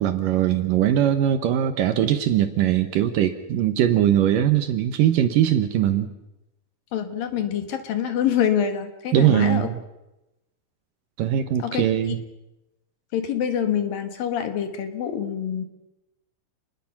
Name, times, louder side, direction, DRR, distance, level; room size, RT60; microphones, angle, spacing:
voice 1, 0.0-6.1 9.1-9.8 11.2-12.2, right 11 dB, 70° right, 9 dB, 2.4 m, -21 dB
voice 2, 6.9-9.7 11.6-11.9 13.1-15.6, left 9 dB, 65° left, 8 dB, 3.3 m, -26 dB
29.0 x 20.5 x 5.9 m, 0.93 s
omnidirectional pair, 4.6 m